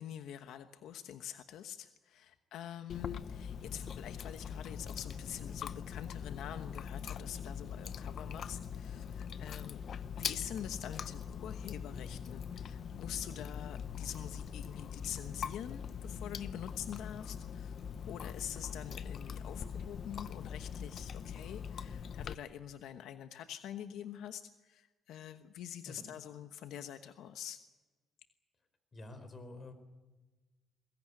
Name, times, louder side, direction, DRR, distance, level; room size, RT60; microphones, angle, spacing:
voice 1, 0.0-9.8 10.2-17.8 18.1-27.6, left 10 dB, 85° left, 8 dB, 1.1 m, -45 dB
Chewing mastication, 2.9-22.3, left 7 dB, 55° left, 0.8 m, -42 dB
voice 2, 28.9-29.7, left 2 dB, 30° left, 8 dB, 4.8 m, -48 dB
22.5 x 17.5 x 9.9 m, 1.2 s
cardioid pair, 120°, 0 cm